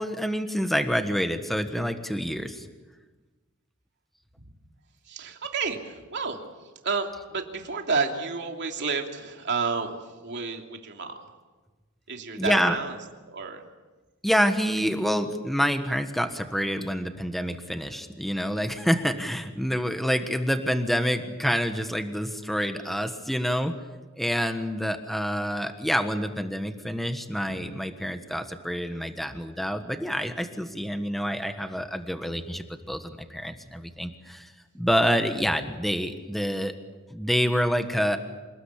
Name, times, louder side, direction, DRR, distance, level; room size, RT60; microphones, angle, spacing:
voice 1, 0.0-2.7 12.3-12.8 14.2-23.7 24.2-36.7 37.1-38.2, equal, ahead, 7 dB, 1.4 m, -27 dB
voice 2, 5.1-6.4 6.8-10.0 10.2-11.2 12.1-12.9 13.3-13.6, right 4 dB, 55° right, 3 dB, 2.9 m, -30 dB
Drum, 27.5-29.2, equal, 80° left, 3.6 m, -49 dB
27.5 x 20.0 x 8.5 m, 1.3 s
head